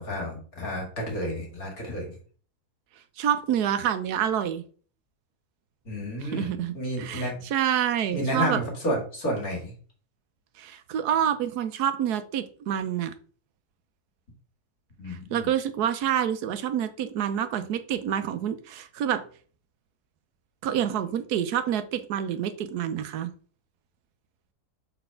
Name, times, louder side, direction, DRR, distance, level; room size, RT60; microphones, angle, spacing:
voice 1, 0.0-2.2 5.9-7.3 8.1-9.7 15.0-15.5, equal, 65° left, -1 dB, 2.5 m, -31 dB
voice 2, 3.2-4.6 6.2-8.6 10.6-13.1 15.1-19.2 20.6-23.3, right 9 dB, 85° right, 10 dB, 1.2 m, -27 dB
4.3 x 4.2 x 5.6 m, 0.43 s
omnidirectional pair, 1.7 m